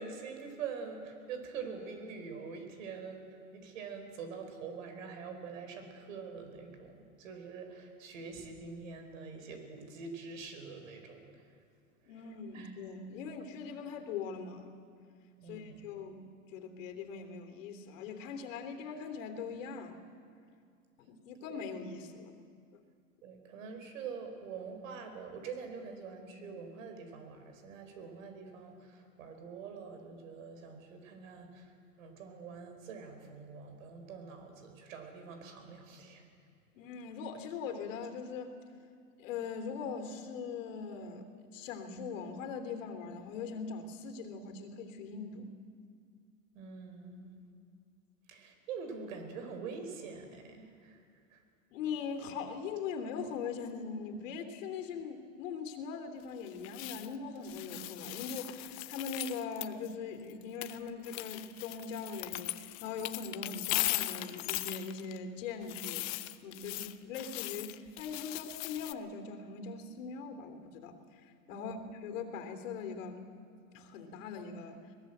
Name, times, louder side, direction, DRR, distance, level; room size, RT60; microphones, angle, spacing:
voice 1, 0.0-11.5 12.0-12.1 12.5-12.7 15.4-15.9 21.4-21.6 23.2-36.3 46.5-47.3 48.3-51.0 51.3-51.4 66.7-66.8 71.5-71.9, right 5 dB, 70° right, 6 dB, 5.0 m, -45 dB
voice 2, 12.1-14.7 15.4-20.0 21.0-22.3 36.7-38.5 39.2-45.5 51.7-66.1 66.4-73.2 73.7-74.8, left 5 dB, 70° left, 7 dB, 3.1 m, -41 dB
sound 1, 56.5-57.2 57.4-59.9 60.3-65.2 65.6-68.9, left 19 dB, 40° left, 0.9 m, -39 dB
22.0 x 19.5 x 7.9 m, 2.2 s
supercardioid pair, 130°, 40 cm